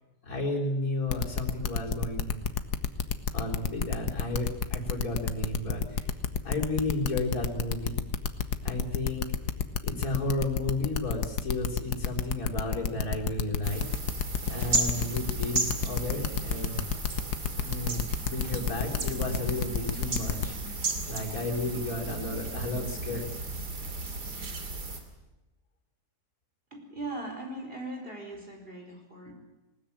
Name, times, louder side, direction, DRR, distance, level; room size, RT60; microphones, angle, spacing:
voice 1, 0.2-2.5 3.3-6.2 6.4-8.0 8.6-9.3 9.8-13.8 14.5-16.9 17.6-20.6 21.1-23.3, left 2 dB, 55° left, -3 dB, 4.3 m, -33 dB
sound 1, 1.1-20.5, left 7 dB, 70° left, 1.6 m, -29 dB
sound 2, 13.6-25.0, right 3 dB, 70° right, 3.2 m, -34 dB
voice 2, 26.7-29.3, right 2 dB, 35° right, 3 dB, 5.1 m, -39 dB
19.5 x 19.0 x 8.7 m, 1.1 s
omnidirectional pair, 1.8 m